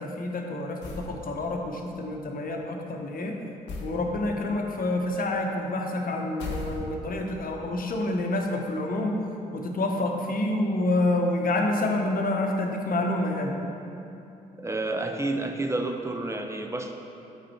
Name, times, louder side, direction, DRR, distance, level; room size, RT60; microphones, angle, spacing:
voice 1, 0.0-3.3 3.8-9.1 9.5-13.6, left 2 dB, 50° left, 2 dB, 1.1 m, -28 dB
sound 1, 0.8-1.2 3.7-4.0 6.4-7.2, left 2 dB, 70° left, 0.9 m, -35 dB
voice 2, 14.6-16.9, right 2 dB, 15° right, 4 dB, 0.8 m, -30 dB
8.0 x 5.1 x 4.4 m, 2.8 s
hypercardioid pair, 40°, 19 cm